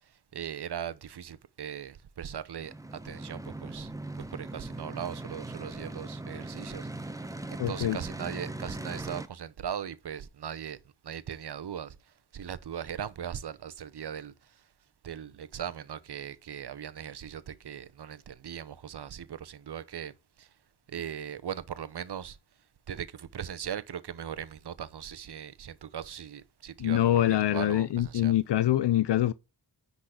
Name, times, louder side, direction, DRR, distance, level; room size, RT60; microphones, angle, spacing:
voice 1, 0.3-3.9 4.3-10.8 11.0-12.0 12.3-14.3 15.0-20.1 20.4-20.5 20.9-22.4 22.9-28.3, right 9 dB, 70° right, 0.9 m, -39 dB
sound 1, 2.6-9.3, right 2 dB, 10° right, 0.9 m, -39 dB
voice 2, 7.6-8.0 26.8-29.3, left 12 dB, 90° left, 0.5 m, -25 dB
10.0 x 4.1 x 4.9 m
wide cardioid pair, 75°, 40 cm